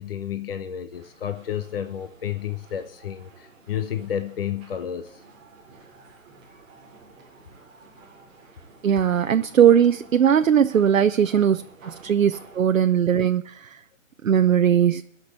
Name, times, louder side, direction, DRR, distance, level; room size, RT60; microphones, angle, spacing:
voice 1, 0.0-5.2 12.1-12.2, left 9 dB, 45° left, 0.8 m, -31 dB
sound 1, 0.9-12.6, right 4 dB, 5° right, 0.6 m, -51 dB
voice 2, 8.8-13.8 14.2-15.0, right 9 dB, 80° right, 0.7 m, -19 dB
11.5 x 6.0 x 8.0 m
hypercardioid pair, 155°, 39 cm